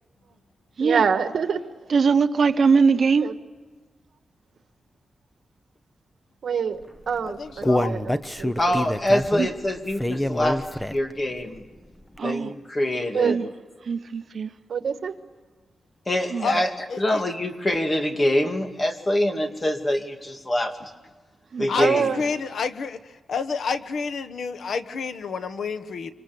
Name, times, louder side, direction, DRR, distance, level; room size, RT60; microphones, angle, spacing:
voice 1, 0.8-1.6 3.2-3.3 6.4-6.8 7.1-8.8 13.1-13.4 14.7-15.1 21.8-22.3, right 6 dB, 70° right, 1.6 m, -25 dB
voice 2, 1.9-3.3 9.4-9.5 12.2-12.5 13.2-13.4 13.9-14.5 16.3-16.4 21.5-21.7, right 5 dB, 55° right, 0.9 m, -21 dB
Human voice, 7.0-11.2 11.6-11.7 12.2-12.3, left 1 dB, 10° left, 0.8 m, -26 dB
voice 3, 7.2-8.0 16.4-16.6 16.9-17.2 21.7-26.1, left 5 dB, 75° left, 1.3 m, -29 dB
voice 4, 8.6-11.6 12.2-13.4 16.1-20.9 21.6-22.1, left 1 dB, 25° left, 2.4 m, -25 dB
26.0 x 25.5 x 6.9 m
wide cardioid pair, 140°, 0 cm